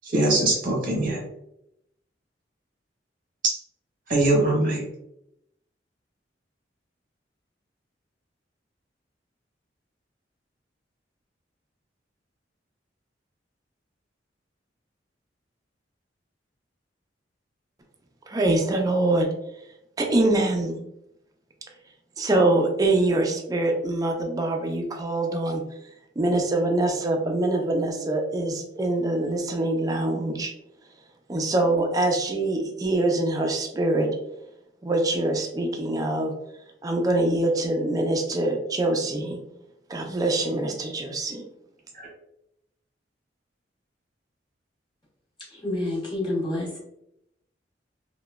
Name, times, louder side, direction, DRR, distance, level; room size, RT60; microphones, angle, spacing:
voice 1, 0.0-1.2 3.4-3.6 4.1-4.8 42.0-42.1, right 2 dB, 50° right, -1 dB, 0.9 m, -22 dB
voice 2, 18.3-19.3 20.0-20.7 22.2-25.6 26.2-30.5 31.3-34.1 34.8-36.3 36.8-39.4 39.9-41.4, right 2 dB, 20° right, 2 dB, 0.3 m, -24 dB
voice 3, 45.4-46.8, left 1 dB, 25° left, -5 dB, 0.9 m, -29 dB
2.9 x 2.1 x 2.2 m, 0.80 s
head